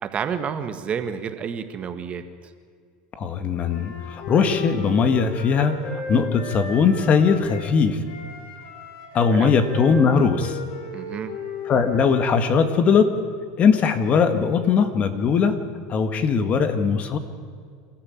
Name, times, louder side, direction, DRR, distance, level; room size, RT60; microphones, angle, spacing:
voice 1, 0.0-2.5 9.3-9.6 10.9-11.3, right 7 dB, 30° right, 8 dB, 1.6 m, -30 dB
voice 2, 3.2-5.8 6.1-8.0 9.1-10.6 11.7-13.2 13.6-17.2, left 5 dB, 35° left, 9 dB, 1.8 m, -20 dB
Wind instrument woodwind instrument, 3.6-7.7 8.0-12.3, left 3 dB, 65° left, 5.9 m, -35 dB
27.0 x 13.5 x 8.8 m, 2.1 s
supercardioid pair, 120°, 4 cm